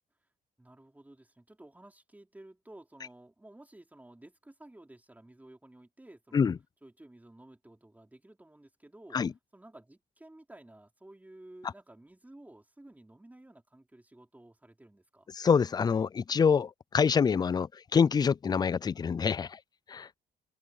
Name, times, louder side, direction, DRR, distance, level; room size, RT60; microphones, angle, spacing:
voice 1, 0.6-6.5 6.8-9.2 9.5-15.3, right 1 dB, 10° right, 5.0 m, -54 dB
voice 2, 15.3-19.6 19.9-20.1, left 6 dB, 25° left, 0.3 m, -26 dB
cardioid pair, 110°, 17 cm